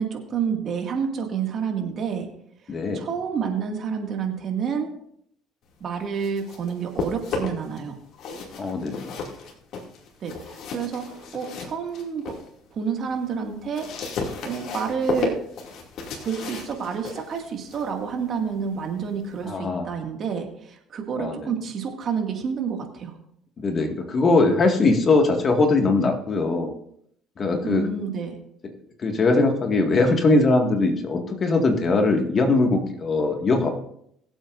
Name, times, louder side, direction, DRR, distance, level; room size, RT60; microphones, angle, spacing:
voice 1, 0.0-2.3 2.6-4.9 5.8-7.9 10.2-12.4 12.7-14.2 14.4-15.4 16.2-23.2 27.6-28.4, right 6 dB, 45° right, 3 dB, 2.0 m, -29 dB
voice 2, 2.7-3.1 8.6-9.2 19.5-19.9 21.2-21.5 23.6-26.7 27.4-27.9 29.0-33.7, left 3 dB, 35° left, 4 dB, 1.8 m, -21 dB
sound 1, 6.0-7.8 8.1-12.5 12.9-19.5, left 4 dB, 60° left, 2.4 m, -34 dB
22.5 x 7.9 x 2.6 m, 0.70 s
cardioid pair, 110°, 0 cm